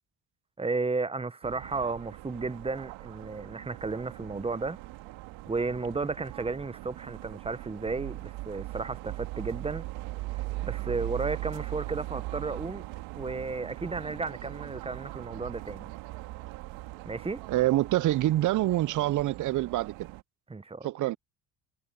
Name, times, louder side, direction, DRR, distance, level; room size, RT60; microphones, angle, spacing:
voice 1, 0.6-4.8 5.5-9.9 10.6-12.8 13.2-15.9 17.0-17.4 20.5-20.9, right 3 dB, 15° right, 0.9 m, -33 dB
sound 1, 1.4-20.2, right 18 dB, 80° right, 1.9 m, -40 dB
voice 2, 17.5-20.1 20.8-21.2, right 15 dB, 45° right, 0.5 m, -26 dB
supercardioid pair, 70°, 45 cm